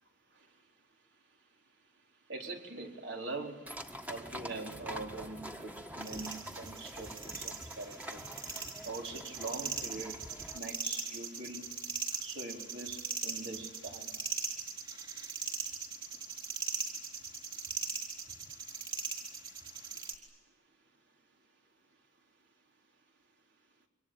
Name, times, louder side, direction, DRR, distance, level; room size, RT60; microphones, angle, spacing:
voice 1, 2.3-3.6 4.1-8.2 8.9-10.2 10.5-11.7 12.2-14.1, right 2 dB, 75° right, 1 dB, 4.2 m, -43 dB
sound 1, 3.7-10.6, equal, 10° right, 1.5 m, -46 dB
sound 2, 6.0-20.1, right 5 dB, 30° right, 3.9 m, -40 dB
26.5 x 25.0 x 8.9 m, 1.2 s
head